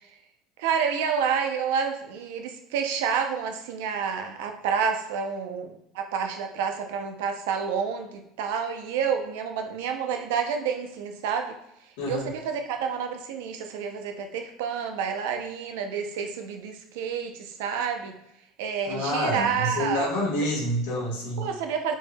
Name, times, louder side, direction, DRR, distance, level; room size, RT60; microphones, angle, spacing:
voice 1, 0.6-11.5 12.0-18.2 18.6-20.1 21.4-21.9, right 6 dB, 85° right, 5 dB, 0.5 m, -29 dB
voice 2, 12.0-12.3 18.9-21.5, left 1 dB, 90° left, -3 dB, 1.2 m, -28 dB
4.6 x 2.7 x 2.2 m, 0.80 s
supercardioid pair, 135°, 0 cm